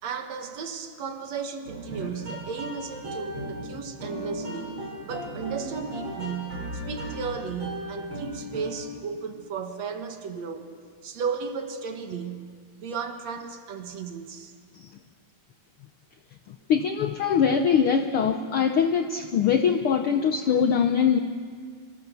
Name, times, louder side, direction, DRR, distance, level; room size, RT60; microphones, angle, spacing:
voice 1, 0.0-4.8 5.0-10.7 11.0-14.5, right 6 dB, 65° right, 6 dB, 2.7 m, -34 dB
sound 1, 1.6-9.0, equal, 40° right, 8.6 m, -36 dB
voice 2, 16.5-21.2, left 7 dB, 70° left, 7 dB, 1.3 m, -23 dB
25.5 x 25.5 x 6.9 m, 2.1 s
omnidirectional pair, 3.5 m